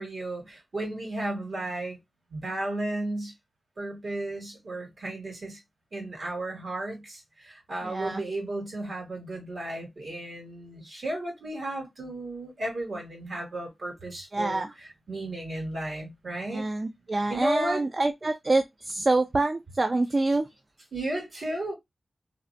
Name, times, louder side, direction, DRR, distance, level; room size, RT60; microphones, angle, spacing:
voice 1, 0.0-2.0 2.3-3.3 3.8-5.6 5.9-16.7 17.1-17.9 20.9-21.7, right 1 dB, 60° right, 2.0 m, -34 dB
voice 2, 7.8-8.2 14.3-14.7 16.5-20.5, right 2 dB, 35° right, 0.3 m, -26 dB
3.2 x 2.5 x 2.5 m
wide cardioid pair, 100°, 0 cm